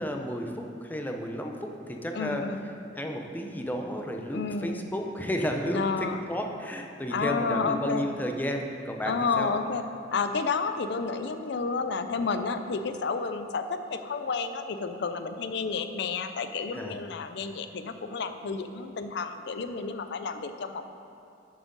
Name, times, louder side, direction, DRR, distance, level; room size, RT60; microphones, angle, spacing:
voice 1, 0.0-2.4 2.9-9.5 16.7-17.0, equal, 10° left, 3 dB, 0.6 m, -32 dB
voice 2, 2.1-2.7 4.3-4.9 5.7-6.2 7.1-8.1 9.0-9.8 10.1-20.8, left 4 dB, 65° left, 9 dB, 0.5 m, -31 dB
7.4 x 6.1 x 5.3 m, 2.7 s
head